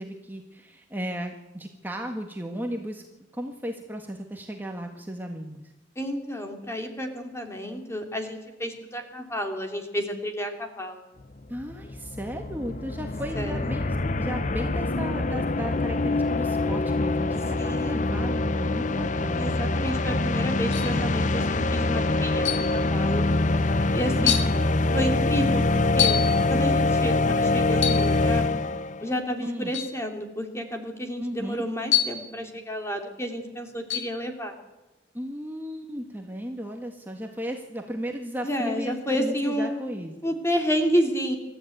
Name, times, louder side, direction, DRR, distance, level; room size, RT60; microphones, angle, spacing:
voice 1, 0.0-3.0 3.3-5.7 11.5-13.9 14.2-19.5 24.2-24.6 29.4-29.7 31.2-31.6 35.1-38.9 39.2-40.1, equal, 10° right, 2 dB, 1.6 m, -35 dB
voice 2, 6.0-11.0 13.3-13.8 17.6-18.1 19.3-23.3 23.9-24.4 24.9-26.2 26.5-28.5 29.0-34.5 38.4-39.7 40.2-41.3, equal, 15° left, 4 dB, 2.8 m, -30 dB
sound 1, 11.3-11.4 11.6-29.0, left 2 dB, 40° left, 0.7 m, -24 dB
sound 2, 20.7-21.0 22.5-22.8 23.6-23.7 24.3-24.6 26.0-26.4 27.8-28.2 29.7-30.0 31.9-32.3 33.9-34.2, left 11 dB, 80° left, 2.1 m, -26 dB
26.0 x 13.5 x 9.1 m, 1.1 s
head